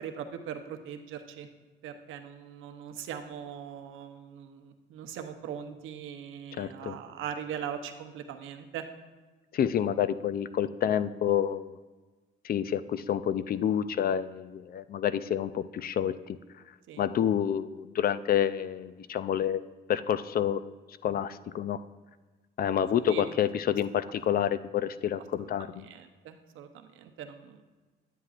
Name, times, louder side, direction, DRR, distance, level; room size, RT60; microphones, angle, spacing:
voice 1, 0.0-1.5 1.8-8.9 16.9-17.1 22.9-23.3 24.3-24.4 25.4-25.5 25.8-27.6, right 8 dB, 85° right, 7 dB, 0.7 m, -40 dB
voice 2, 6.5-7.0 9.5-11.8 12.4-16.4 17.0-19.6 19.9-20.6 21.0-21.8 22.6-25.9, left 9 dB, 50° left, 14 dB, 0.4 m, -28 dB
9.9 x 9.3 x 2.4 m, 1.3 s
cardioid pair, 90°, 20 cm